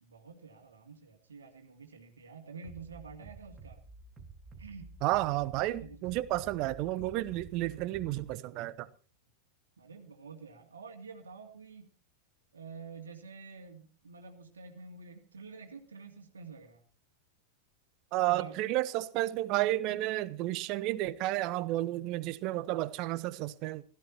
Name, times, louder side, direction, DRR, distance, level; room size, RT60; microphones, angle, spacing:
voice 1, 0.0-3.9 4.6-5.0 5.8-6.2 9.8-11.9 12.5-16.8 18.3-18.6, right 5 dB, 70° right, 2.4 m, -48 dB
Bass drum, 2.6-8.3, right 3 dB, 20° right, 2.6 m, -51 dB
voice 2, 5.0-8.7 18.1-23.8, right 16 dB, 40° right, 0.9 m, -31 dB
16.5 x 14.0 x 4.5 m
figure-of-eight pair, 90°, 0 cm